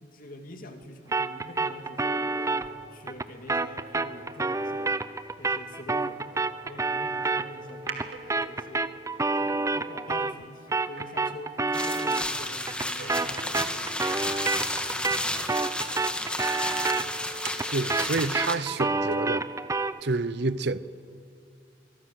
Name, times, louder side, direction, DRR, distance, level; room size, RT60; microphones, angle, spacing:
voice 1, 0.0-5.0 5.4-8.9 9.3-14.2 14.8-15.7 16.2-17.3, left 1 dB, 50° left, 2.5 m, -45 dB
sound 1, 1.1-10.5 10.7-20.0, right 3 dB, 15° right, 0.7 m, -29 dB
sound 2, 7.6-19.2, right 6 dB, 85° right, 2.5 m, -47 dB
sound 3, 11.7-18.6, left 1 dB, 5° left, 1.7 m, -32 dB
voice 2, 17.7-19.5 20.0-20.8, right 3 dB, 65° right, 0.8 m, -28 dB
28.0 x 24.0 x 7.8 m
head